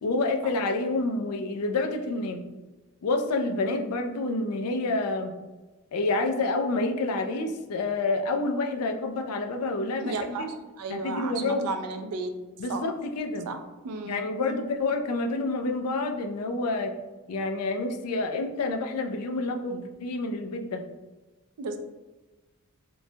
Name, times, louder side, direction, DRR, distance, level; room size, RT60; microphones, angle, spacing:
voice 1, 0.0-2.4 3.0-5.3 5.9-10.5 10.9-11.6 12.6-13.5 14.0-16.9 17.3-20.8, left 2 dB, 80° left, 5 dB, 0.4 m, -28 dB
voice 2, 10.0-10.5 10.8-12.3 12.7-12.8 13.5-13.6 13.8-14.7 21.6-21.8, right 3 dB, 90° right, 7 dB, 0.4 m, -33 dB
3.0 x 2.1 x 2.7 m, 1.1 s
head